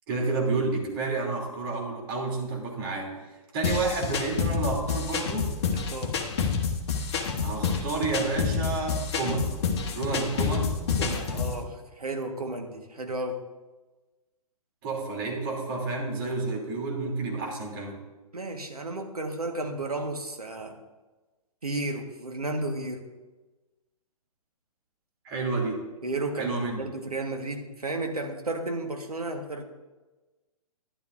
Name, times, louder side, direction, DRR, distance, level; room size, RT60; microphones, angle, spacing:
voice 1, 0.1-3.1 3.5-5.5 7.4-9.5 9.9-10.7 14.8-18.0 25.2-25.8 26.4-26.8, right 3 dB, 35° right, -1 dB, 3.1 m, -30 dB
sound 1, 3.6-11.6, left 5 dB, 45° left, 1.3 m, -28 dB
voice 2, 5.7-6.3 11.0-13.4 18.3-20.8 21.6-23.0 26.0-29.6, right 2 dB, 80° right, 4 dB, 1.5 m, -33 dB
12.5 x 11.0 x 2.6 m, 1.2 s
figure-of-eight pair, 120°, 19 cm